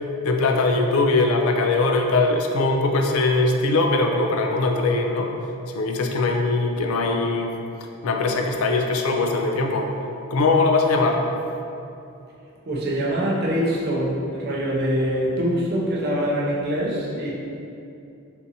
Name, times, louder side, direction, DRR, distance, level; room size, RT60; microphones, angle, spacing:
voice 1, 0.2-5.3 5.7-7.5 8.0-9.9 10.3-11.2, left 3 dB, 70° left, 2 dB, 0.4 m, -21 dB
voice 2, 12.7-17.3, equal, 45° right, -4 dB, 0.5 m, -24 dB
3.6 x 2.6 x 2.7 m, 2.7 s
head